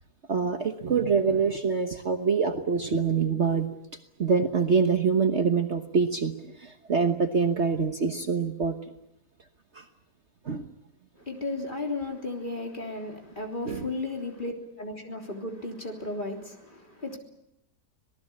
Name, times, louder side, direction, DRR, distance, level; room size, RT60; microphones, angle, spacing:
voice 1, 0.3-3.7 4.2-8.7 9.7-9.8 10.4-10.6 13.7-13.9, right 5 dB, 45° right, 1.4 m, -25 dB
voice 2, 11.2-17.2, left 2 dB, 30° left, 3.5 m, -34 dB
26.5 x 19.0 x 8.6 m
omnidirectional pair, 1.8 m